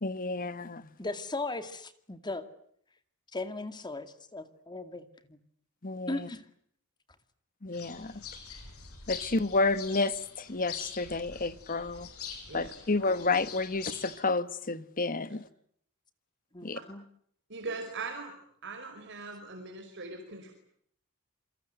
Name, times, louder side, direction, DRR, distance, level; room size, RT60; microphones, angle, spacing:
voice 1, 0.0-0.8 5.8-6.2 7.6-8.2 9.1-12.1 12.5-15.5 16.6-16.8, left 3 dB, 40° left, 1.3 m, -30 dB
voice 2, 1.0-2.5 3.3-5.4 6.1-6.5 13.1-13.5 16.5-17.0, left 2 dB, 20° left, 2.1 m, -38 dB
sound 1, 7.7-14.2, left 6 dB, 80° left, 6.1 m, -45 dB
voice 3, 17.5-18.3 18.6-20.5, right 3 dB, 55° right, 5.2 m, -40 dB
28.0 x 24.5 x 8.0 m
head